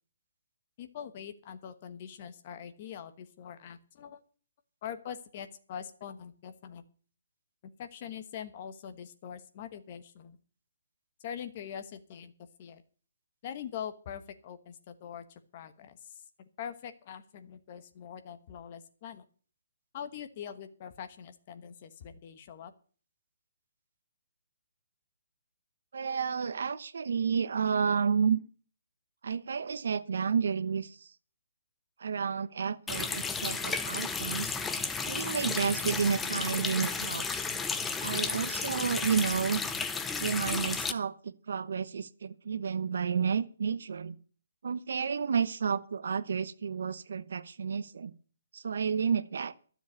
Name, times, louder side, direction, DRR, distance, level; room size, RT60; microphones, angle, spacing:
voice 1, 0.8-4.2 4.8-6.8 7.8-10.4 11.2-12.3 12.6-12.8 13.4-16.1 16.6-19.2 19.9-22.7, left 8 dB, 30° left, 1.2 m, -43 dB
voice 2, 25.9-28.4 29.2-31.1 32.0-34.6 35.1-37.5 38.0-39.6 40.2-44.2 44.6-48.1 48.5-49.5, right 6 dB, 60° right, 1.0 m, -31 dB
Water tap faucet, 32.9-40.9, left 4 dB, 5° left, 0.5 m, -33 dB
12.5 x 7.2 x 8.2 m
hypercardioid pair, 170°, 0 cm